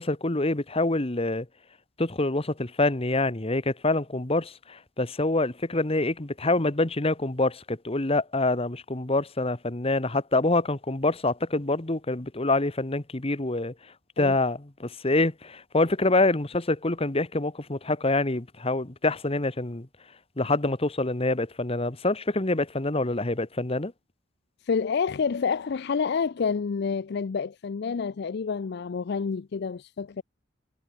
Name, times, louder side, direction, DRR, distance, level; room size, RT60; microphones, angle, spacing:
voice 1, 0.0-1.5 2.0-13.7 14.2-19.9 20.4-23.9, left 2 dB, 30° left, 1.3 m, -26 dB
voice 2, 24.6-30.2, left 5 dB, 55° left, 0.4 m, -28 dB
head